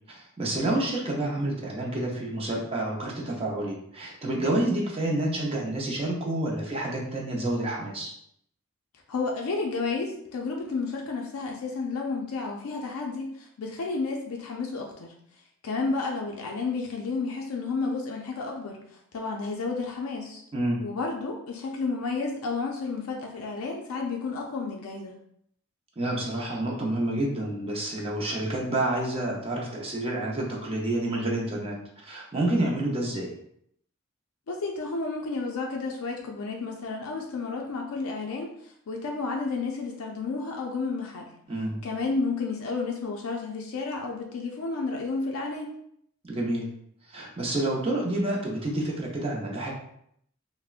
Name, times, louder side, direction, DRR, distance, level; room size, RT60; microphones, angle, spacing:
voice 1, 0.1-8.1 20.5-20.8 26.0-33.3 41.5-41.8 46.3-46.7 47.1-49.7, right 1 dB, 25° right, -2 dB, 0.6 m, -29 dB
voice 2, 9.1-15.1 15.6-18.8 19.1-20.4 20.8-25.2 34.5-41.3 41.8-45.7, left 4 dB, 80° left, 0 dB, 0.4 m, -31 dB
3.4 x 2.0 x 2.4 m, 0.70 s
head